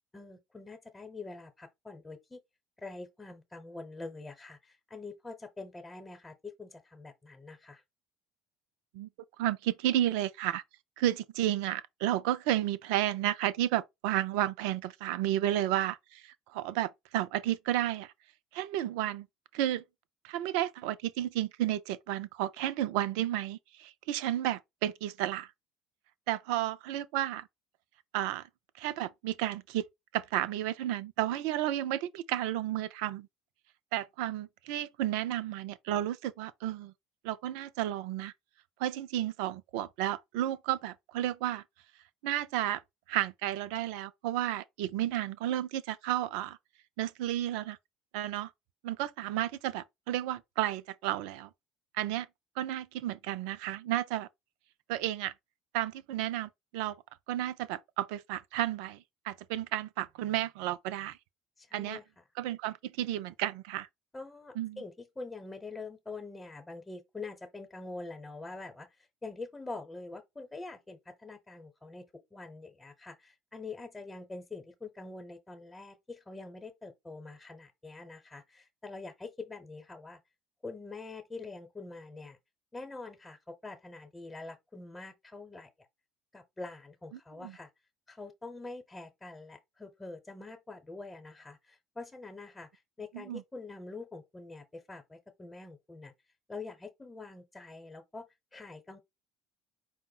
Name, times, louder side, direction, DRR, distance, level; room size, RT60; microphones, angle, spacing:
voice 1, 0.1-2.4 2.8-7.8 61.6-62.0 64.1-80.2 80.6-82.4 82.7-85.7 86.3-87.7 88.1-96.1 96.5-99.0, left 3 dB, 15° left, 0.9 m, -45 dB
voice 2, 9.4-10.6 11.0-18.1 18.5-19.3 19.5-19.8 20.2-25.5 26.3-27.5 28.1-28.5 28.8-29.8 30.1-33.3 33.9-36.9 37.2-38.3 38.8-41.6 42.2-42.8 43.1-46.6 47.0-47.8 48.1-48.5 48.8-51.5 51.9-52.3 52.6-54.3 54.9-55.3 55.7-57.0 57.3-61.2 61.7-62.0 62.4-63.9 64.6-64.8 87.4-87.5 93.1-93.4, right 13 dB, 65° right, 0.4 m, -32 dB
5.0 x 2.1 x 4.4 m
figure-of-eight pair, 60°, 0 cm